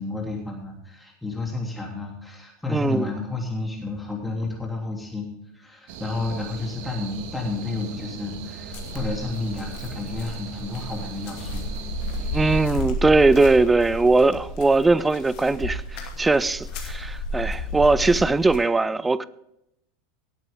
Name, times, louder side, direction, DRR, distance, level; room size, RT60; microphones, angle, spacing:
voice 1, 0.0-5.3 5.5-11.7 12.2-12.3, left 3 dB, 5° left, 3.1 m, -31 dB
voice 2, 2.7-3.1 12.3-19.3, right 3 dB, 10° right, 0.5 m, -20 dB
sound 1, 5.9-12.7, right 7 dB, 55° right, 1.5 m, -39 dB
sound 2, 8.7-18.6, left 1 dB, 55° left, 2.6 m, -32 dB
18.5 x 9.0 x 3.7 m
figure-of-eight pair, 80°, 0 cm